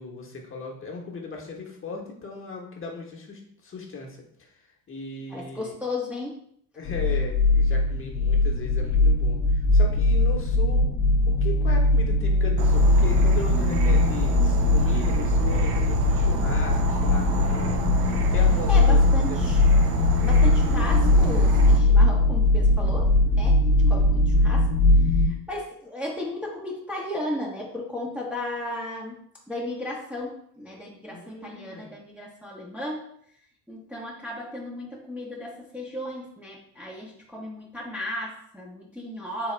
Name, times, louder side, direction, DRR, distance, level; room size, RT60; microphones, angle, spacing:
voice 1, 0.0-4.5 4.9-5.7 6.8-10.9 11.2-19.4 31.1-31.9, left 4 dB, 25° left, 0 dB, 1.0 m, -37 dB
voice 2, 5.3-6.4 18.7-19.7 20.2-24.7 25.0-29.2 29.5-33.1 33.7-39.5, left 1 dB, 5° right, -4 dB, 0.7 m, -35 dB
sound 1, 6.8-25.3, left 2 dB, 50° left, 0.7 m, -20 dB
Insect / Frog, 12.6-21.8, right 5 dB, 60° right, 0.7 m, -29 dB
3.9 x 2.8 x 3.2 m, 0.67 s
hypercardioid pair, 65°, 48 cm